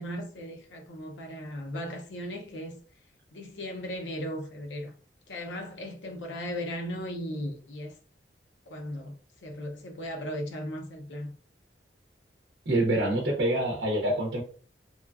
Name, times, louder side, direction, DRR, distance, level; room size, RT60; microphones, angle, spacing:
voice 1, 0.0-2.8 3.3-4.9 5.3-7.9 8.7-9.1 9.4-11.3, equal, 90° left, 0.6 m, -37 dB
voice 2, 12.7-14.4, right 1 dB, 70° right, 0.6 m, -26 dB
2.9 x 2.2 x 2.3 m
head